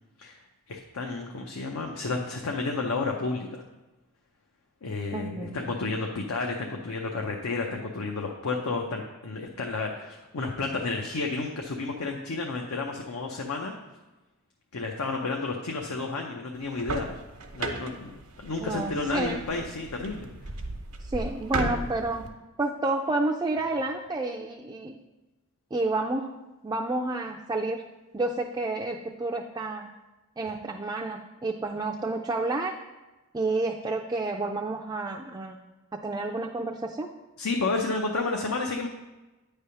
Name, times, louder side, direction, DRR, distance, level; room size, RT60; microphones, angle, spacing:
voice 1, 0.7-3.6 4.8-13.7 14.7-17.2 17.5-20.3 37.4-38.9, left 3 dB, 80° left, 1 dB, 0.7 m, -31 dB
voice 2, 5.1-5.6 18.6-19.4 21.0-22.2 22.6-25.0 25.7-26.3 26.6-27.8 28.1-29.9 30.4-32.7 33.3-35.6 35.9-37.1, right 2 dB, 15° right, 0 dB, 0.3 m, -30 dB
sound 1, 16.6-22.3, right 2 dB, 85° right, 0.9 m, -35 dB
9.1 x 3.4 x 5.6 m, 1.1 s
head